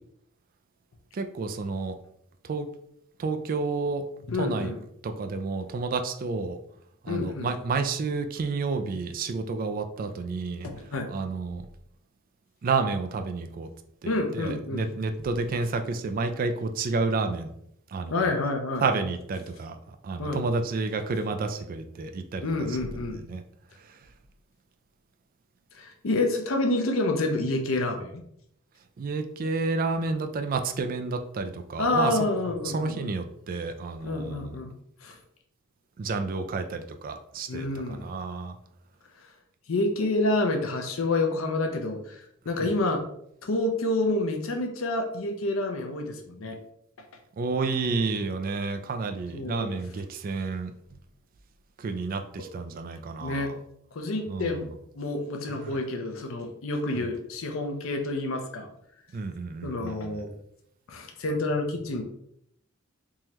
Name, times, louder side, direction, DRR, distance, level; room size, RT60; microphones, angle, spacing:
voice 1, 1.1-2.0 2.4-2.7 3.2-4.0 4.4-4.7 5.0-6.6 7.0-10.7 11.1-11.7 12.6-13.7 14.0-17.5 17.9-18.3 18.8-22.8 23.2-23.4 23.8-24.1 29.0-32.2 32.6-34.5 36.0-38.6 42.6-42.7 47.4-51.0 51.8-53.6 54.3-54.7 55.5-55.8 56.9-57.1 59.1-60.2, right 4 dB, 45° right, 7 dB, 0.3 m, -30 dB
voice 2, 4.3-4.8 7.1-7.5 10.6-11.1 14.0-14.8 18.1-18.8 20.2-20.4 22.4-23.2 25.7-28.2 31.8-33.1 34.0-34.7 35.0-35.2 37.5-38.1 39.7-43.0 43.4-46.6 49.3-49.7 53.2-53.5 53.9-54.7 55.0-58.7 59.6-60.3 60.9-62.0, left 2 dB, 80° left, 4 dB, 0.6 m, -28 dB
3.7 x 2.8 x 3.0 m, 0.73 s
head